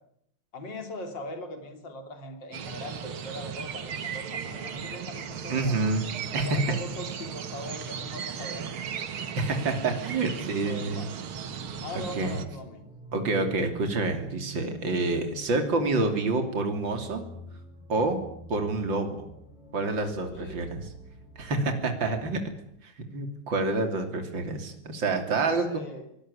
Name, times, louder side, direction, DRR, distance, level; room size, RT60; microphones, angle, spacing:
voice 1, 0.5-5.8 6.4-8.7 10.2-11.1 11.8-12.8 20.3-20.7 25.3-26.1, left 1 dB, 60° left, 6 dB, 4.0 m, -41 dB
sound 1, 2.5-12.5, right 7 dB, 80° right, 2.4 m, -36 dB
voice 2, 5.5-6.0 6.3-6.6 9.4-11.0 12.2-12.3 13.1-17.2 17.9-18.2 18.5-19.3 19.7-20.8 21.4-22.4 22.8-25.8, right 3 dB, 60° right, 5 dB, 3.8 m, -28 dB
sound 2, 11.6-22.4, right 2 dB, ahead, 6.1 m, -46 dB
24.0 x 19.0 x 9.9 m, 0.73 s
omnidirectional pair, 2.3 m